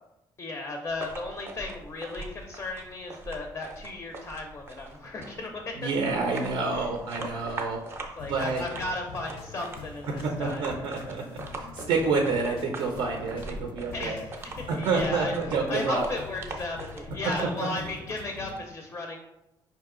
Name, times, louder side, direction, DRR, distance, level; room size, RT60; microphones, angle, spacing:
voice 1, 0.4-5.9 6.7-6.9 7.4-7.5 8.2-10.7 11.8-11.9 13.9-15.3 15.7-19.2, left 2 dB, 25° left, 3 dB, 0.4 m, -35 dB
sound 1, 0.9-17.5, right 2 dB, 25° right, 0.5 m, -42 dB
voice 2, 5.8-7.9 8.3-8.6 10.2-14.2 14.7-16.0, right 4 dB, 75° right, 2 dB, 0.5 m, -28 dB
sound 2, 8.2-18.6, left 4 dB, 85° left, 0.4 m, -44 dB
4.9 x 2.7 x 3.6 m, 0.91 s
cardioid pair, 175°, 9 cm